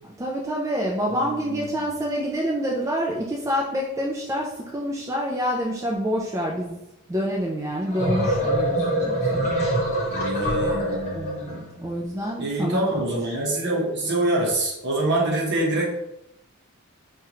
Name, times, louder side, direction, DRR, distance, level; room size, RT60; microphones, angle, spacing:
voice 1, 0.0-6.8 7.1-9.5 11.1-13.0, equal, 15° right, -3 dB, 0.3 m, -27 dB
voice 2, 1.2-1.7 10.1-11.8 12.4-15.9, right 1 dB, 55° right, -2 dB, 0.9 m, -25 dB
sound 1, 7.7-11.6, right 1 dB, 30° left, 1.1 m, -24 dB
4.3 x 2.4 x 2.9 m, 0.87 s
head